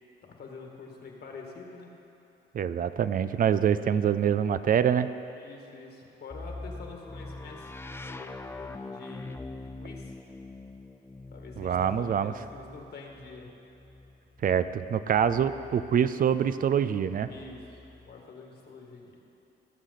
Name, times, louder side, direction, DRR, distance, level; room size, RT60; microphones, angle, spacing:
voice 1, 0.2-1.9 5.4-7.7 8.0-10.1 11.3-13.5 17.3-19.2, left 4 dB, 55° left, 0 dB, 1.8 m, -46 dB
voice 2, 2.5-5.1 11.6-12.3 14.4-17.3, right 8 dB, 45° right, 13 dB, 0.4 m, -25 dB
sound 1, 6.3-16.1 17.1-18.2, left 2 dB, 10° left, 0.4 m, -44 dB
18.5 x 6.5 x 3.9 m, 3.0 s
cardioid pair, 90°, 20 cm